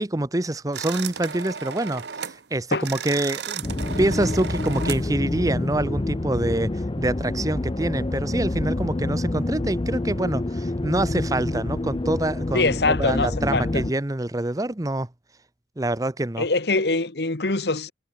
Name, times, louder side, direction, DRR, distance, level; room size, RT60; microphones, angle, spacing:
voice 1, 0.0-3.6 4.0-15.1 15.8-16.5, right 1 dB, 20° right, 0.8 m, -26 dB
sound 1, 0.7-2.4 2.7-5.1, right 7 dB, 70° right, 1.0 m, -34 dB
sound 2, 3.6-13.9, left 2 dB, 25° left, 0.5 m, -27 dB
voice 2, 12.5-13.8 16.4-17.9, left 3 dB, 65° left, 1.5 m, -23 dB
head